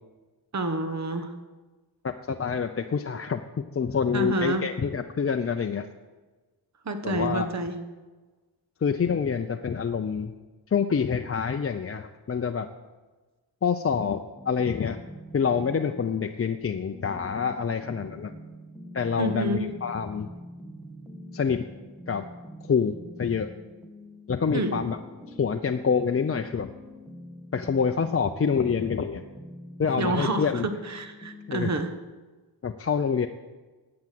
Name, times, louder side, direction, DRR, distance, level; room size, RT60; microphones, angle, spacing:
voice 1, 0.5-1.3 4.1-4.7 6.8-7.8 19.2-19.7 24.5-24.8 30.0-31.9, right 2 dB, 35° right, 8 dB, 1.3 m, -28 dB
voice 2, 2.0-3.4 3.7-5.9 7.0-7.5 8.8-10.3 10.7-12.7 13.6-15.0 15.3-18.3 18.9-20.3 21.3-21.6 22.1-22.3 22.7-23.5 24.3-25.0 25.3-26.7 27.5-29.2 29.8-30.7 31.5-31.7 32.6-33.3, left 6 dB, 30° left, 6 dB, 0.6 m, -26 dB
sound 1, 14.4-31.7, equal, ahead, 1.5 m, -45 dB
11.5 x 8.8 x 7.7 m, 1.3 s
cardioid pair, 85°, 45 cm